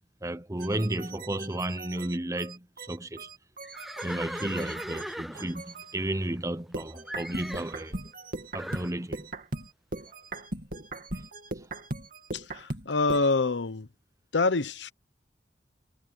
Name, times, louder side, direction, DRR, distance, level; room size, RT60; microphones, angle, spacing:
voice 1, 0.2-3.3 4.0-8.0 8.5-9.3, right 1 dB, 20° right, 1.0 m, -33 dB
sound 1, 0.6-5.9 6.7-13.3, right 2 dB, 55° right, 2.9 m, -39 dB
Livestock farm animals working animals, 3.6-6.7 7.1-7.8 8.6-8.9, equal, ahead, 0.5 m, -39 dB
voice 2, 12.3-13.9 14.3-14.9, left 3 dB, 85° left, 0.9 m, -26 dB
head